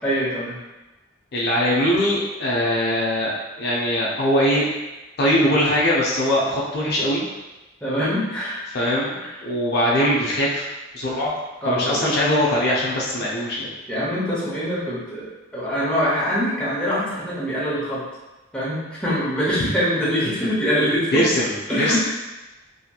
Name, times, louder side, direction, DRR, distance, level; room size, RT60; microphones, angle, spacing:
voice 1, 0.0-0.6 5.4-5.5 7.8-8.6 11.6-12.0 13.9-18.0 18.5-21.2 21.7-22.0, equal, 5° left, -9 dB, 0.7 m, -24 dB
voice 2, 1.3-4.7 5.2-7.2 8.7-10.7 10.9-11.3 11.6-13.7 19.6-19.7 21.1-22.0, equal, 55° left, -5 dB, 0.5 m, -21 dB
2.8 x 2.7 x 2.2 m, 1.1 s
head